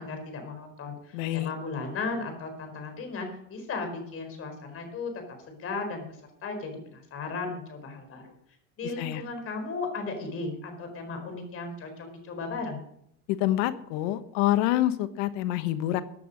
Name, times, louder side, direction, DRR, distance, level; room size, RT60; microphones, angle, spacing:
voice 1, 0.0-5.1 5.5-6.0 6.4-8.3 8.8-12.8, left 3 dB, 35° left, 6 dB, 4.5 m, -36 dB
voice 2, 1.1-1.5 9.0-9.2 13.3-16.0, left 14 dB, 75° left, 13 dB, 1.2 m, -26 dB
15.5 x 9.5 x 5.2 m, 0.71 s
supercardioid pair, 135°, 38 cm